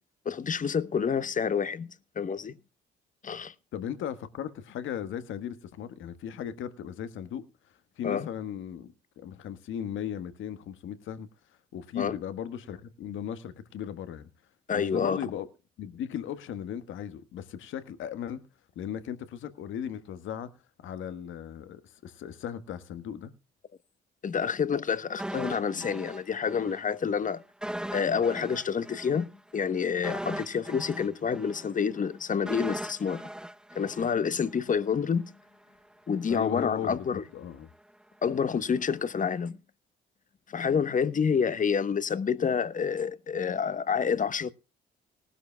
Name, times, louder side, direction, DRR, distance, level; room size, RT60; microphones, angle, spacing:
voice 1, 0.2-2.5 3.2-3.5 8.0-8.3 12.0-12.2 14.7-15.2 24.2-27.4 27.9-33.3 33.7-35.3 36.1-37.2 38.2-39.6 40.5-44.5, left 6 dB, 40° left, 1.1 m, -28 dB
voice 2, 3.7-7.4 8.0-11.3 11.7-14.3 14.7-15.5 15.8-18.4 18.7-20.5 20.8-23.3 36.3-37.7, left 9 dB, 70° left, 1.5 m, -37 dB
sound 1, 25.2-26.8 27.1-27.2 27.6-34.7 35.0-35.1, right 1 dB, 5° right, 0.8 m, -39 dB
19.0 x 12.5 x 2.3 m
supercardioid pair, 60°, 21 cm